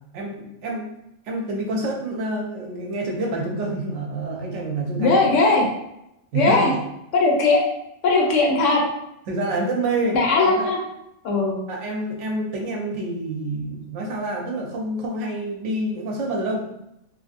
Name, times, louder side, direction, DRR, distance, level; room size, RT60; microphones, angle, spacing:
voice 1, 0.1-0.9 1.3-5.2 6.3-6.7 9.3-10.7 11.7-16.6, right 2 dB, 80° right, 0 dB, 1.0 m, -27 dB
voice 2, 5.0-5.6 6.3-6.7 7.1-7.6 8.0-8.8 10.1-10.8 11.2-11.6, left 3 dB, 85° left, 0 dB, 1.0 m, -18 dB
2.6 x 2.6 x 2.4 m, 0.82 s
omnidirectional pair, 1.2 m